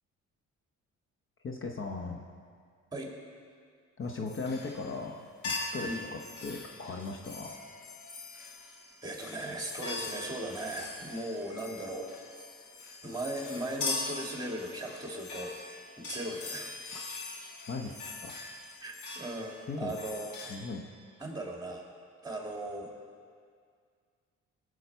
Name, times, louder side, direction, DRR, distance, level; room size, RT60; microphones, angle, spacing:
voice 1, 1.4-2.3 4.0-5.2 5.4-7.5 17.7-18.4 19.7-19.9 20.5-20.9, left 3 dB, 45° left, 2 dB, 1.0 m, -38 dB
sound 1, 4.3-5.1 5.4-20.6, left 3 dB, 80° left, 1.8 m, -41 dB
voice 2, 9.0-12.1 13.0-15.5 16.0-16.8 18.8-20.3 21.2-21.8 22.2-22.9, right 1 dB, 15° right, 0 dB, 2.2 m, -38 dB
18.0 x 6.5 x 4.6 m, 2.1 s
cardioid pair, 90°, 30 cm